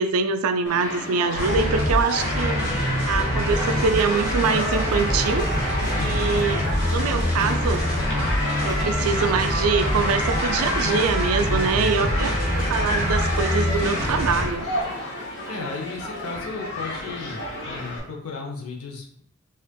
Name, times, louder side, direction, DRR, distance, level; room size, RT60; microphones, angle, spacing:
voice 1, 0.0-2.6 3.1-5.5 6.0-6.6 6.9-7.9 8.6-14.7, right 5 dB, 75° right, 9 dB, 0.4 m, -24 dB
Human group actions, 0.7-18.0, left 1 dB, 55° left, 1.2 m, -33 dB
sound 1, 1.3-14.4, equal, 40° left, 1.5 m, -24 dB
sound 2, 3.7-14.8, equal, 20° left, 0.4 m, -38 dB
voice 2, 5.8-6.4 11.5-12.6 15.5-19.2, left 3 dB, 85° left, 0 dB, 0.7 m, -35 dB
5.2 x 2.4 x 2.2 m, 0.65 s
head